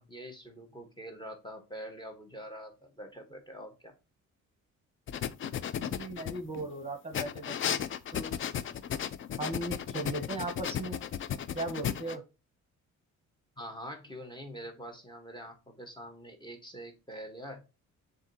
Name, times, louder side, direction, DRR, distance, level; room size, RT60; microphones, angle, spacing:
voice 1, 0.0-3.9 13.6-17.6, equal, 15° left, 4 dB, 1.1 m, -45 dB
sound 1, 5.1-6.7 7.1-12.2, left 9 dB, 45° left, 0.4 m, -35 dB
voice 2, 5.8-7.8 8.1-8.4 9.4-11.0 11.5-12.2, right 2 dB, 20° right, 4 dB, 1.0 m, -37 dB
7.1 x 2.7 x 2.7 m, 0.28 s
cardioid pair, 90°, 30 cm